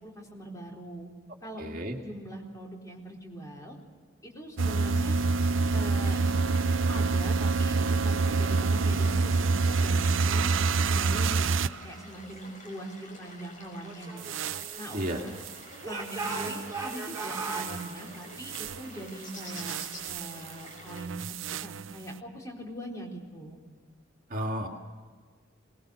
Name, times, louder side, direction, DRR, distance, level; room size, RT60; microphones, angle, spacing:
voice 1, 0.0-1.1 1.4-3.8 4.2-5.2 5.7-6.3 6.9-11.6 11.8-14.3 14.8-15.2 15.8-19.8 20.1-21.2 21.6-23.6, right 1 dB, 15° left, -1 dB, 4.2 m, -41 dB
voice 2, 1.6-2.0 14.9-15.2 24.3-24.7, equal, 45° right, 1 dB, 2.2 m, -32 dB
sound 1, 4.6-21.0, left 2 dB, 40° left, 5.7 m, -50 dB
sound 2, 4.6-11.8 14.2-15.5 16.1-18.0 18.4-18.8 19.4-20.5 20.9-21.9, right 4 dB, 90° right, 0.6 m, -27 dB
Speech / Shout, 13.8-15.4 15.8-17.7, right 3 dB, 15° right, 4.2 m, -37 dB
23.5 x 20.0 x 6.5 m, 1.5 s
head